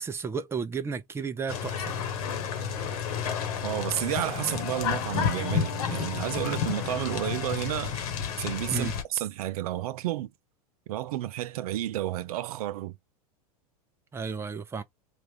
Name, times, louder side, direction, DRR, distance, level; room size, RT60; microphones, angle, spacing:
voice 1, 0.0-1.9 8.7-8.9 14.1-14.8, right 5 dB, 15° right, 0.5 m, -33 dB
sound 1, 1.5-9.0, left 7 dB, 70° left, 1.1 m, -31 dB
Wind instrument woodwind instrument, 3.2-9.0, left 11 dB, 40° left, 1.0 m, -45 dB
voice 2, 3.6-8.0 8.4-10.3 10.9-12.9, right 14 dB, 70° right, 0.4 m, -31 dB
3.4 x 2.4 x 3.1 m
hypercardioid pair, 105°, 20 cm